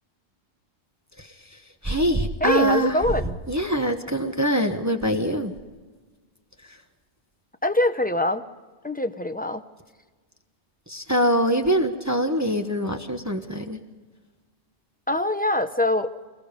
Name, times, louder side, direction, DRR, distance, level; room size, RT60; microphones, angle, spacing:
voice 1, 1.8-3.0 3.5-5.5 10.9-13.8, right 1 dB, 15° right, 6 dB, 1.1 m, -23 dB
voice 2, 2.4-3.4 7.6-8.4 8.8-9.6 15.1-16.1, left 1 dB, 10° left, 9 dB, 0.7 m, -23 dB
24.5 x 21.0 x 5.2 m, 1.4 s
omnidirectional pair, 1.2 m